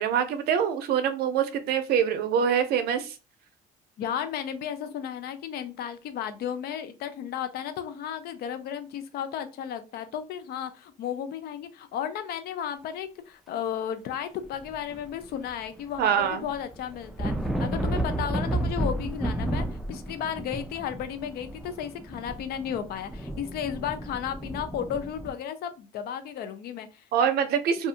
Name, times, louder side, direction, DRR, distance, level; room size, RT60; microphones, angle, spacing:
voice 1, 0.0-3.1 16.0-16.5 27.1-27.9, right 8 dB, 70° right, 9 dB, 0.5 m, -25 dB
voice 2, 4.0-17.3 17.6-27.0, left 9 dB, 70° left, 10 dB, 0.5 m, -34 dB
sound 1, 14.5-15.5 15.8-25.3, right 1 dB, ahead, 0.4 m, -32 dB
2.6 x 2.3 x 2.4 m, 0.31 s
cardioid pair, 110°, 17 cm